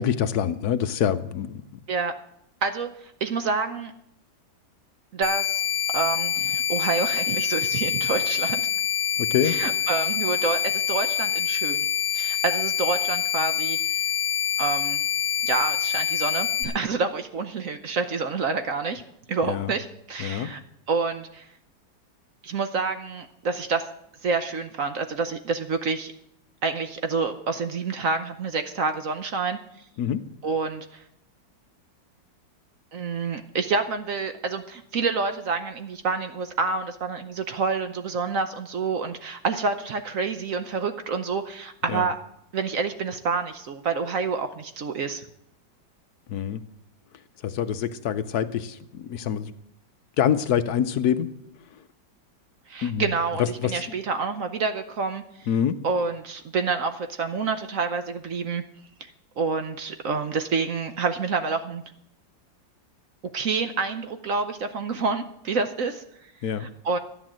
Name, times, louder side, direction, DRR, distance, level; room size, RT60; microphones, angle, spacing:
voice 1, 0.0-1.6 9.2-9.6 19.5-19.7 20.2-20.5 30.0-30.2 41.9-42.1 46.3-46.6 47.4-49.5 50.2-51.3 52.8-53.0 53.4-53.7 55.5-55.8 66.4-66.7, left 9 dB, 65° left, 10 dB, 1.1 m, -25 dB
voice 2, 3.2-3.9 5.1-5.6 5.9-8.6 9.4-11.9 12.1-14.0 14.6-15.0 15.4-19.0 19.3-20.6 20.9-21.5 22.4-23.9 24.2-26.1 26.6-29.6 30.4-31.0 32.9-42.2 42.5-45.3 52.7-55.5 55.8-58.6 59.0-59.1 59.4-61.8 63.3-66.0 66.6-67.0, right 4 dB, 55° right, 8 dB, 1.0 m, -28 dB
sound 1, 5.2-16.6, left 9 dB, 40° right, 2.1 m, -26 dB
13.0 x 9.7 x 7.5 m, 0.77 s
omnidirectional pair, 2.1 m